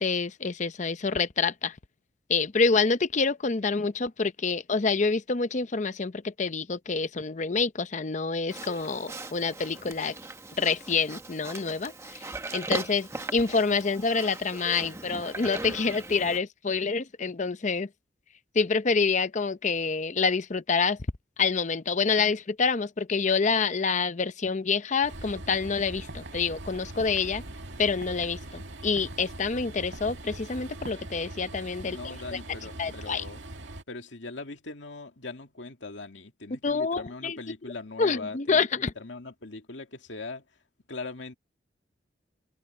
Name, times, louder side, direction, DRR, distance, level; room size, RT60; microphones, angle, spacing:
voice 1, 0.0-1.7 2.3-10.2 10.6-12.2 12.5-17.9 18.5-21.0 21.4-27.4 27.8-32.4 32.8-33.2 36.5-37.4 38.0-38.9, left 4 dB, 40° left, 0.6 m, -27 dB
Livestock farm animals working animals, 8.5-16.4, right 2 dB, 15° right, 1.2 m, -39 dB
Train, 25.0-33.8, right 1 dB, 85° right, 2.1 m, -42 dB
sound 1, 25.9-30.9, right 1 dB, 60° right, 4.7 m, -48 dB
voice 2, 31.8-33.4 33.9-38.6 39.0-40.4 40.9-41.3, left 3 dB, 90° left, 2.3 m, -40 dB
head